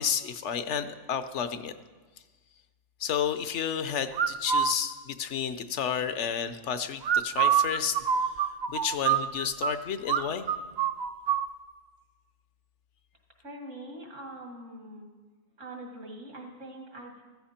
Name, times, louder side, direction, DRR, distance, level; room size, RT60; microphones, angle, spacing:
voice 1, 0.0-1.7 3.0-8.3 8.7-10.5, left 8 dB, 70° left, 11 dB, 1.1 m, -31 dB
sound 1, 4.1-4.7 7.0-9.7 10.1-10.2 10.5-11.5, right 8 dB, 60° right, 0.4 m, -25 dB
voice 2, 13.4-15.1 15.6-17.2, right 1 dB, 80° right, 1 dB, 2.5 m, -43 dB
14.5 x 14.0 x 4.4 m, 1.3 s
omnidirectional pair, 1.3 m